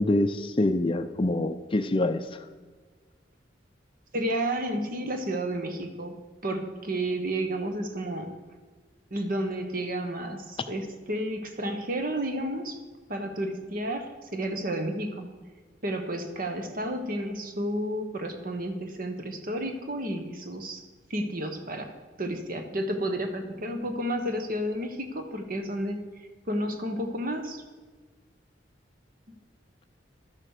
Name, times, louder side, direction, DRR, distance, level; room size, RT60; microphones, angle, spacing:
voice 1, 0.0-2.2, left 1 dB, 30° left, 9 dB, 0.5 m, -25 dB
voice 2, 4.1-6.2 6.4-8.3 9.1-12.8 13.1-15.3 15.8-20.8 21.1-21.9 22.2-27.6, right 1 dB, 50° right, 6 dB, 1.3 m, -31 dB
11.5 x 7.5 x 6.6 m, 1.4 s
head